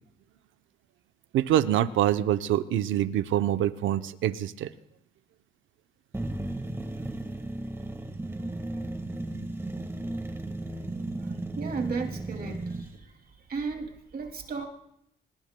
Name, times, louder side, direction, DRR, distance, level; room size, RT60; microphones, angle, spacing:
voice 1, 1.3-4.7, right 12 dB, 80° right, 12 dB, 0.7 m, -25 dB
sound 1, 6.1-12.9, right 2 dB, 10° right, 1.6 m, -35 dB
voice 2, 11.6-13.1 13.5-14.7, right 4 dB, 50° right, 3 dB, 2.5 m, -34 dB
26.0 x 19.5 x 2.2 m, 0.77 s
cardioid pair, 90°, 20 cm